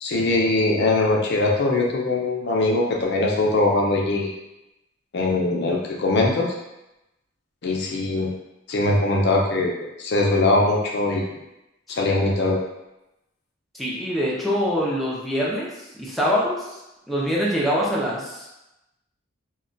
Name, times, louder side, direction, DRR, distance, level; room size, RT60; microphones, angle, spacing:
voice 1, 0.0-4.3 5.1-6.5 7.6-8.3 8.7-11.4 11.9-12.6, left 2 dB, 60° left, -2 dB, 0.5 m, -21 dB
voice 2, 13.7-16.8 17.1-18.5, equal, ahead, -6 dB, 0.5 m, -24 dB
2.3 x 2.2 x 3.7 m, 0.93 s
head